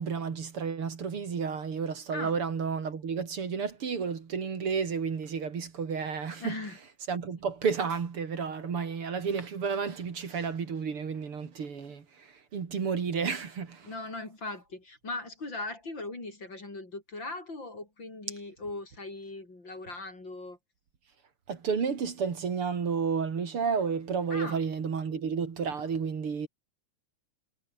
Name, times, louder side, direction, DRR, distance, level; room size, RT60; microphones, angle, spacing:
voice 1, 0.0-6.6 7.1-13.9 21.5-26.5, right 6 dB, 50° right, 3.1 m, -31 dB
voice 2, 6.4-6.8 13.8-20.6 24.3-24.6, left 2 dB, 35° left, 6.7 m, -39 dB
omnidirectional pair, 3.4 m